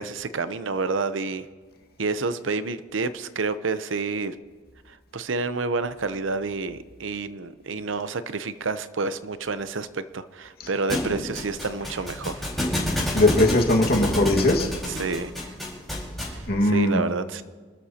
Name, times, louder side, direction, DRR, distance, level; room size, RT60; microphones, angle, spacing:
voice 1, 0.0-1.5 2.0-4.3 4.9-12.5 14.9-15.5 16.3-17.4, right 4 dB, 80° right, 12 dB, 0.7 m, -29 dB
Thump thud, 10.9-16.5, left 1 dB, ahead, 4.8 m, -29 dB
voice 2, 13.1-14.7 16.5-17.0, left 1 dB, 55° left, 1 dB, 1.8 m, -20 dB
27.5 x 13.5 x 2.9 m, 1.5 s
head